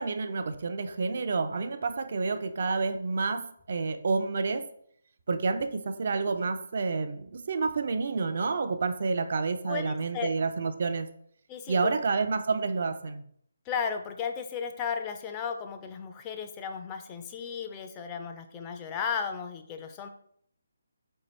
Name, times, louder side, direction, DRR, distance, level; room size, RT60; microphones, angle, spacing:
voice 1, 0.0-4.7 5.3-11.1 11.7-13.2, right 4 dB, 45° right, 9 dB, 0.4 m, -29 dB
voice 2, 9.7-10.3 11.5-11.9 13.7-20.1, left 6 dB, 20° left, 5 dB, 0.4 m, -35 dB
4.4 x 3.8 x 3.1 m, 0.64 s
figure-of-eight pair, 145°, 0 cm